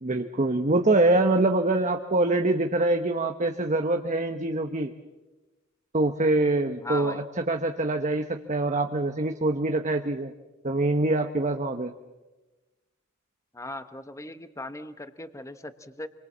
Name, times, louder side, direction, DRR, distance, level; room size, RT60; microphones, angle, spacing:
voice 1, 0.0-4.9 5.9-10.3 10.6-11.9, right 2 dB, 35° right, 5 dB, 1.0 m, -24 dB
voice 2, 6.8-7.2 13.5-16.1, left 1 dB, 15° left, 10 dB, 1.1 m, -38 dB
28.0 x 23.0 x 7.3 m, 1.1 s
head